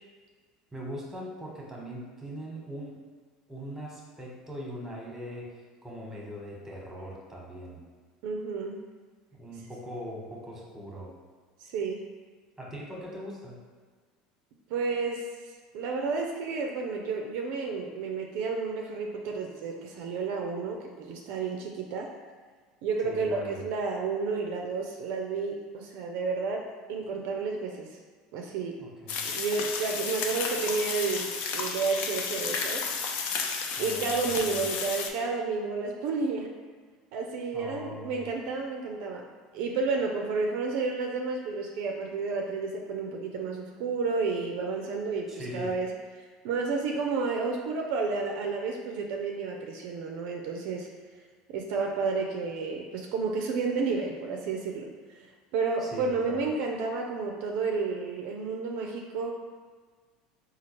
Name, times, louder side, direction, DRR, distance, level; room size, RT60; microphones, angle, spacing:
voice 1, 0.7-3.0 3.5-5.5 5.8-7.8 9.4-11.1 12.6-13.6 23.0-23.6 28.8-29.3 33.8-34.6 37.5-38.3 45.3-45.7 55.8-56.4, equal, 10° right, -3 dB, 1.1 m, -40 dB
voice 2, 8.2-8.8 11.6-12.1 14.7-15.3 15.7-22.1 22.8-28.0 28.3-28.8 29.2-32.9 33.8-36.5 37.1-39.3 39.5-45.9 46.1-50.9 51.5-54.9 55.2-55.3 55.5-59.3, right 4 dB, 65° right, 1 dB, 0.4 m, -31 dB
sound 1, 29.1-35.1, left 5 dB, 60° left, 0.4 m, -32 dB
4.2 x 2.3 x 3.0 m, 1.5 s
hypercardioid pair, 85°, 3 cm